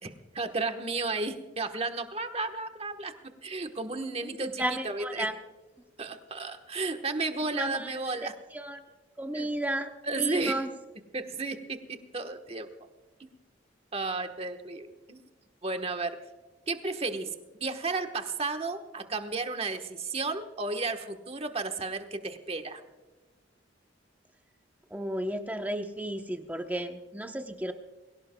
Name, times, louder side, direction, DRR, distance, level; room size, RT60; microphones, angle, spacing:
voice 1, 0.0-3.1 3.4-5.3 6.0-8.4 9.3-9.5 10.0-10.7 11.1-12.7 13.2-13.3 13.9-15.2 15.6-16.2 16.7-22.8, right 3 dB, 30° right, 7 dB, 1.2 m, -33 dB
voice 2, 4.4-5.3 7.5-7.9 8.5-8.8 9.2-9.9 10.2-10.7 24.9-27.7, right 1 dB, 10° right, 5 dB, 0.9 m, -33 dB
22.5 x 17.0 x 2.3 m, 1.2 s
head